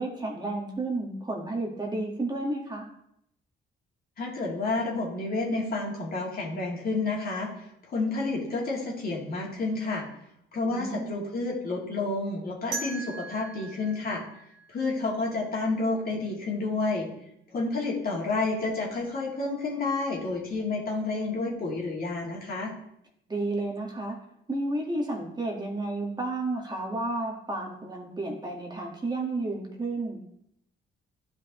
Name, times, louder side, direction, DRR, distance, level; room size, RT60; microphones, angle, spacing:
voice 1, 0.0-2.8 10.6-11.2 23.3-24.2 24.5-30.2, right 2 dB, 20° right, -1 dB, 1.6 m, -32 dB
voice 2, 4.2-7.5 7.9-10.1 10.5-14.2 14.7-17.1 17.5-22.7, left 3 dB, 50° left, -3 dB, 2.5 m, -30 dB
sound 1, 12.7-15.6, right 4 dB, 70° right, 2.1 m, -40 dB
11.5 x 5.1 x 3.1 m, 0.75 s
cardioid pair, 90°, 20 cm